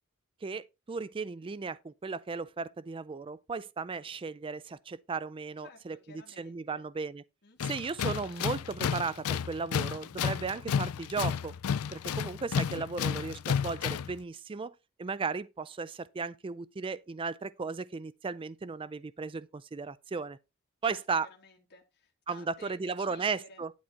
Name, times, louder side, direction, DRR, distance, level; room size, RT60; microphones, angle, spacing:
voice 1, 0.4-6.0 6.4-7.2 7.6-11.5 11.9-20.4 20.8-21.3 22.3-23.7, right 4 dB, 25° right, 0.4 m, -36 dB
voice 2, 5.6-6.8 7.4-8.0 20.9-23.6, left 3 dB, 50° left, 2.4 m, -55 dB
Tools, 7.6-14.2, left 7 dB, 80° left, 0.4 m, -32 dB
11.5 x 4.4 x 4.5 m
head